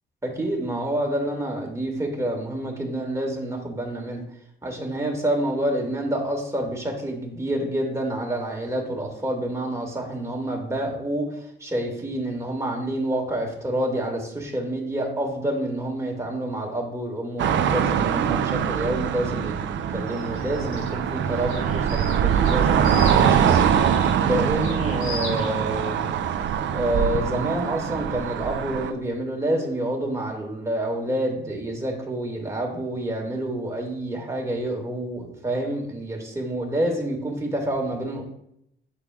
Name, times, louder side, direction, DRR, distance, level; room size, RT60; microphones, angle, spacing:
voice 1, 0.2-4.2 4.6-11.3 11.6-19.6 19.9-23.8 24.2-26.0 26.7-38.2, right 1 dB, 15° right, 0 dB, 2.0 m, -28 dB
sound 1, 17.4-28.9, right 8 dB, 70° right, 0.5 m, -23 dB
sound 2, 20.1-28.5, left 3 dB, 80° left, 2.7 m, -40 dB
8.4 x 6.4 x 2.3 m, 0.74 s
cardioid pair, 90°, 20 cm